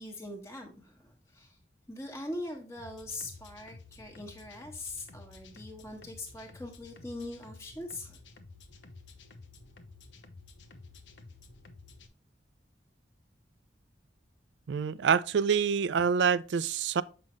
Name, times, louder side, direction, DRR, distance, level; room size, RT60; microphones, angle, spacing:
voice 1, 0.0-1.6 1.9-8.2, left 1 dB, 15° left, 1.2 m, -42 dB
sound 1, 2.8-12.1, left 3 dB, 85° left, 0.9 m, -52 dB
voice 2, 14.7-17.0, right 6 dB, 75° right, 0.4 m, -26 dB
7.6 x 5.6 x 3.1 m
head